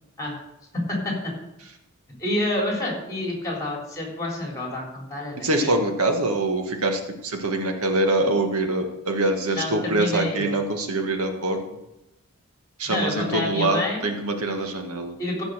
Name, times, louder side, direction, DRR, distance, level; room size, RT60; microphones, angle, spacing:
voice 1, 0.7-1.3 2.2-5.7 9.5-10.6 12.9-14.1 15.2-15.4, left 1 dB, 15° left, -1 dB, 3.7 m, -28 dB
voice 2, 5.4-11.6 12.8-15.2, right 2 dB, 85° right, 4 dB, 1.6 m, -24 dB
15.5 x 5.3 x 6.6 m, 0.91 s
head